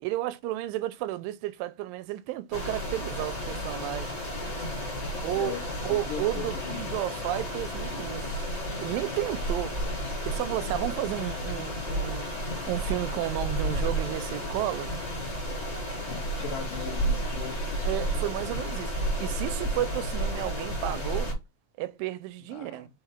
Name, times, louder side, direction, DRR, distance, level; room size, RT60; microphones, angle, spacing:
voice 1, 0.0-4.2 5.2-8.4 8.8-9.8 10.3-12.3 12.7-14.9 17.8-21.3 21.8-22.9, right 15 dB, 85° right, 2.3 m, -32 dB
sound 1, 2.5-21.3, equal, 15° left, 1.6 m, -32 dB
voice 2, 4.9-5.6 5.9-6.8 16.0-17.7 22.5-22.9, left 9 dB, 75° left, 2.7 m, -39 dB
5.7 x 4.2 x 4.3 m
omnidirectional pair, 4.0 m